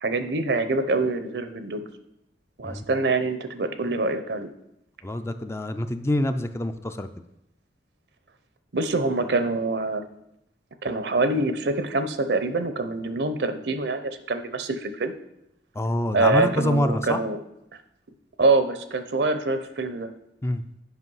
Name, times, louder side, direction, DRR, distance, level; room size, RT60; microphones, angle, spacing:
voice 1, 0.0-1.9 2.6-4.5 8.7-10.0 10.8-15.1 16.1-17.4 18.4-20.1, right 3 dB, 70° right, 10 dB, 0.7 m, -25 dB
voice 2, 5.0-7.1 15.8-17.2 20.4-20.6, left 1 dB, 15° left, 9 dB, 0.4 m, -26 dB
8.2 x 5.2 x 5.5 m, 0.83 s
head